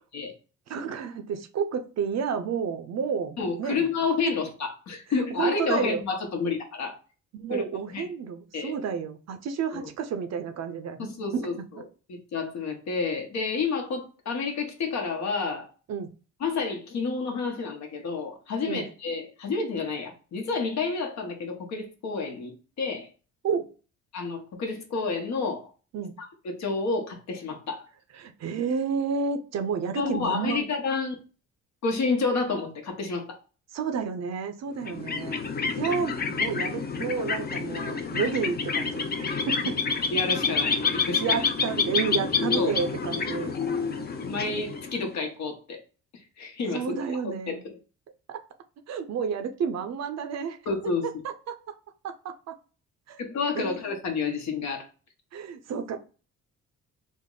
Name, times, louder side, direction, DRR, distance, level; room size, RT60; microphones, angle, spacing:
voice 1, 0.7-3.9 5.4-6.0 7.3-11.5 15.9-16.1 18.7-18.9 23.4-23.7 25.9-26.1 28.1-30.7 33.7-35.4 35.8-39.8 41.2-43.5 46.7-47.6 48.3-48.4 48.9-50.6 51.0-51.7 52.0-52.6 53.1-53.2 53.5-53.9 55.3-56.0, right 6 dB, 60° right, 0.6 m, -31 dB
voice 2, 3.4-7.0 7.5-7.7 7.9-8.1 8.5-8.7 9.7-9.9 11.0-11.6 12.1-15.7 16.4-23.1 24.1-25.7 26.2-27.9 29.9-31.1 31.8-33.4 40.1-41.4 42.5-42.7 44.2-45.8 46.1-47.0 47.5-47.8 50.7-51.1 53.2-54.9, left 4 dB, 65° left, 1.0 m, -30 dB
sound 1, 34.8-45.2, left 5 dB, 30° left, 0.5 m, -28 dB
3.5 x 2.0 x 3.7 m
cardioid pair, 90°, 30 cm